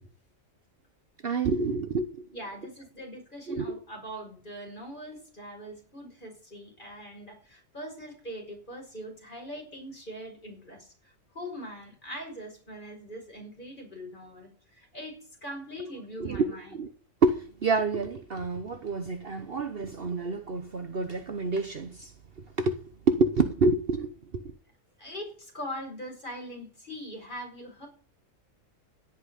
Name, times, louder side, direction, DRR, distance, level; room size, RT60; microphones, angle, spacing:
voice 1, 1.2-2.2 3.5-3.8 16.2-16.9 17.2-17.4 17.6-22.1 22.6-22.7 23.1-24.4, right 3 dB, 50° right, 1.1 m, -28 dB
voice 2, 2.3-16.8 25.0-27.9, equal, 35° left, 6.2 m, -42 dB
16.5 x 5.8 x 10.0 m
omnidirectional pair, 1.4 m